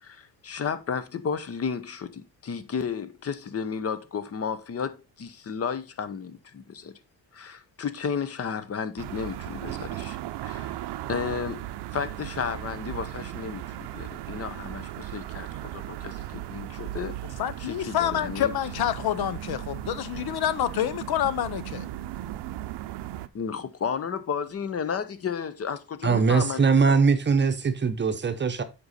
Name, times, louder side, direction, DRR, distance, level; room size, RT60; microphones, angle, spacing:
voice 1, 0.0-6.9 7.3-11.6 11.9-17.1 17.6-18.5 23.3-27.0, left 6 dB, 35° left, 0.8 m, -33 dB
sound 1, 9.0-23.3, right 14 dB, 85° right, 0.7 m, -37 dB
voice 2, 17.4-21.9, left 10 dB, 70° left, 0.8 m, -27 dB
voice 3, 26.0-28.6, right 5 dB, 30° right, 0.8 m, -21 dB
7.8 x 5.4 x 4.1 m
cardioid pair, 140°, 40 cm